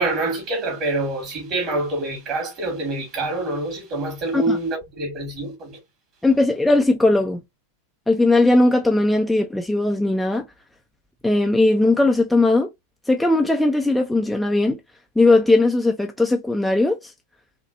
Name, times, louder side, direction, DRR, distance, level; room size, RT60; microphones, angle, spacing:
voice 1, 0.0-5.8, right 2 dB, 35° right, 2.5 m, -26 dB
voice 2, 6.2-7.4 8.1-10.4 11.2-12.7 13.1-14.8 15.2-17.1, left 2 dB, 5° left, 0.7 m, -18 dB
4.8 x 3.1 x 2.7 m
figure-of-eight pair, 90°, 0 cm